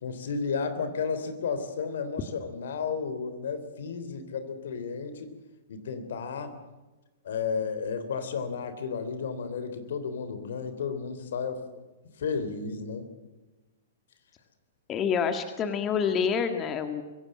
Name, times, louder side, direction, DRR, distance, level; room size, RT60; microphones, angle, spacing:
voice 1, 0.0-5.3 5.7-6.6 7.2-11.7 12.2-13.1, left 5 dB, 75° left, 10 dB, 3.3 m, -33 dB
voice 2, 14.9-17.0, left 6 dB, 25° left, 8 dB, 1.9 m, -27 dB
24.5 x 16.5 x 7.6 m, 1.2 s
hypercardioid pair, 125°, 0 cm